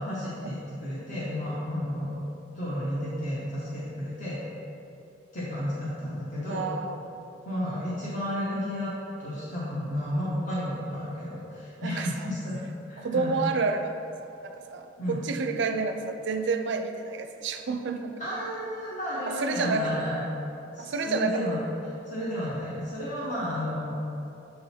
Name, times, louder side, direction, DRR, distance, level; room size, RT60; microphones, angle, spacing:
voice 1, 0.0-2.2 2.5-4.4 5.3-6.7 7.4-8.9 9.2-12.6 12.9-13.4 15.0-15.2 18.2-20.2 20.7-21.6 22.0-23.9, left 1 dB, 45° left, -8 dB, 1.0 m, -32 dB
voice 2, 6.5-7.0 11.8-12.3 13.0-14.0 14.4-18.2 19.3-19.9 20.8-21.4, right 4 dB, 65° right, 6 dB, 0.4 m, -29 dB
6.8 x 3.9 x 4.2 m, 2.8 s
head